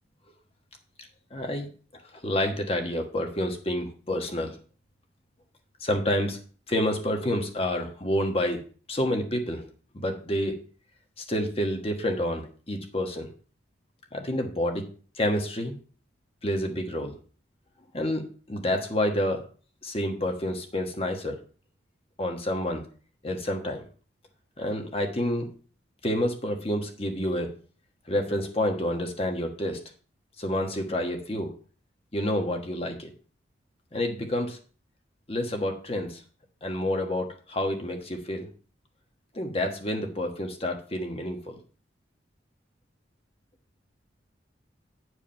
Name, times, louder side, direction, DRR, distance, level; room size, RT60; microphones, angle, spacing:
voice 1, 1.3-1.7 1.9-4.6 5.8-6.4 6.7-8.6 8.9-9.6 9.9-10.6 11.2-13.3 14.1-14.8 15.1-15.7 16.4-17.1 17.9-18.2 18.5-19.4 19.8-21.4 22.2-22.8 23.2-23.9 24.6-25.5 26.0-27.5 28.1-29.8 30.4-31.5 32.1-33.1 33.9-34.6 35.3-36.2 36.6-38.5 39.3-41.5, left 1 dB, 30° left, 3 dB, 1.4 m, -28 dB
9.3 x 4.8 x 5.7 m, 0.41 s
head